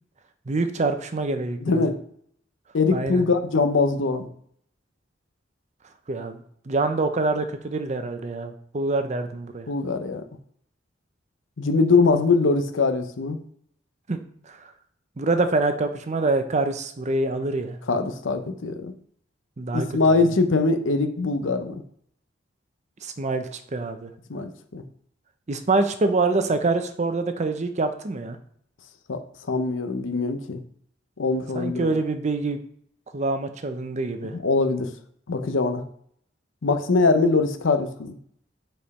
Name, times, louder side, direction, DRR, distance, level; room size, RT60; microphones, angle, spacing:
voice 1, 0.5-1.8 2.9-3.2 6.1-9.7 14.1-14.2 14.5-14.7 15.2-17.8 19.6-20.2 23.0-24.1 25.5-28.4 31.5-32.6 33.1-34.4, right 3 dB, 40° right, 8 dB, 0.6 m, -25 dB
voice 2, 1.6-2.0 2.7-4.3 9.7-10.3 11.6-13.4 17.9-18.9 19.7-21.8 24.3-24.8 29.1-29.2 29.5-30.6 31.2-31.9 34.2-34.9 35.3-35.8 36.6-38.2, left 3 dB, 85° left, 7 dB, 0.7 m, -22 dB
5.3 x 4.4 x 4.1 m, 0.65 s
head